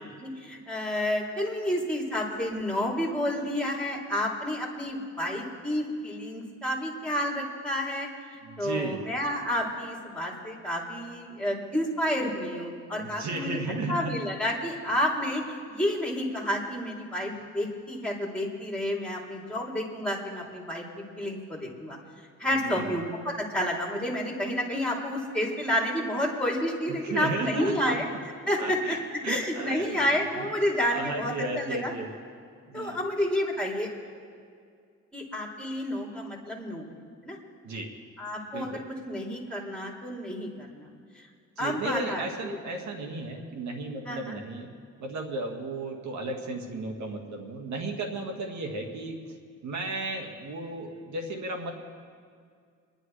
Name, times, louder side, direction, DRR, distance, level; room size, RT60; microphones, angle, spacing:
voice 1, 0.2-8.1 8.6-13.6 13.9-15.4 15.7-22.0 22.4-28.0 28.5-28.8 29.3-31.9 32.7-33.9 35.1-36.9 37.2-37.4 38.2-40.9 41.6-42.2 44.1-44.2, left 1 dB, 5° left, -2 dB, 3.1 m, -30 dB
voice 2, 8.4-9.1 12.9-14.1 22.5-23.0 26.9-28.2 28.6-29.0 29.2-30.0 30.3-30.5 30.9-32.1 32.7-33.1 37.6-37.9 38.5-38.8 41.6-44.7 45.0-49.3 49.6-51.7, right 2 dB, 70° right, 3 dB, 1.8 m, -34 dB
27.5 x 11.0 x 3.3 m, 2.1 s
cardioid pair, 90°, 30 cm